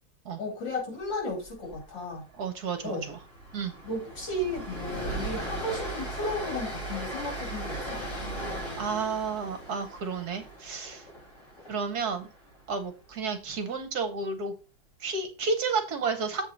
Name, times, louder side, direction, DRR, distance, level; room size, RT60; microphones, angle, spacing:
voice 1, 0.4-2.2 2.8-3.0 3.8-8.0, left 1 dB, 75° left, 3.7 m, -34 dB
Train, 1.5-1.8 2.0-2.2 2.6-12.7, right 1 dB, 40° left, 2.9 m, -38 dB
voice 2, 2.4-3.2 3.5-3.7 8.8-11.1 11.7-12.3 12.7-14.5 15.0-16.5, right 4 dB, 60° right, 1.4 m, -31 dB
7.7 x 3.7 x 6.0 m
omnidirectional pair, 2.0 m